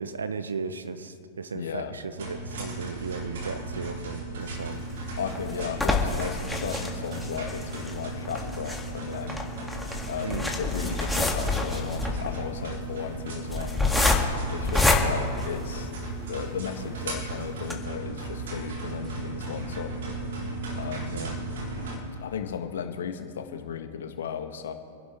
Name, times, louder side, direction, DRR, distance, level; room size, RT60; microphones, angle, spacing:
voice 1, 0.0-5.1 10.2-10.5 21.1-21.3, right 4 dB, 85° right, 12 dB, 1.0 m, -36 dB
voice 2, 1.5-1.9 5.2-9.4 10.1-13.8 14.5-15.9 16.3-20.0 20.4-20.5 20.8-21.3 22.2-24.7, left 7 dB, 70° left, 6 dB, 1.4 m, -35 dB
sound 1, 2.1-21.9, right 2 dB, 70° right, 3.7 m, -36 dB
sound 2, 4.8-16.2 16.7-16.8 17.1-17.2 17.6-17.7, left 2 dB, 5° left, 1.8 m, -28 dB
sound 3, 14.4-17.4 17.7-19.1, right 5 dB, 35° right, 4.0 m, -44 dB
26.0 x 11.0 x 3.5 m, 2.5 s
hypercardioid pair, 105°, 0 cm